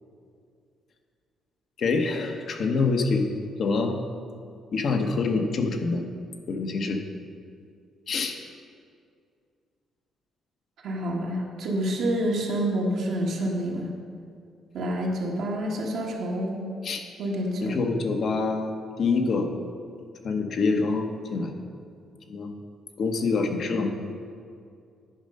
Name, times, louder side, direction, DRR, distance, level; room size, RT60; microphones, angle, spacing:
voice 1, 1.8-3.3 3.6-3.9 4.7-6.0 6.5-7.0 8.1-8.4 16.8-17.0 17.6-19.5 20.2-21.5 22.3-22.5 23.0-24.0, left 4 dB, 60° left, 4 dB, 1.0 m, -26 dB
voice 2, 10.8-13.9 14.7-16.6 17.2-17.8, right 1 dB, 75° right, -3 dB, 1.5 m, -28 dB
10.0 x 5.4 x 5.3 m, 2.3 s
cardioid pair, 90°, 0 cm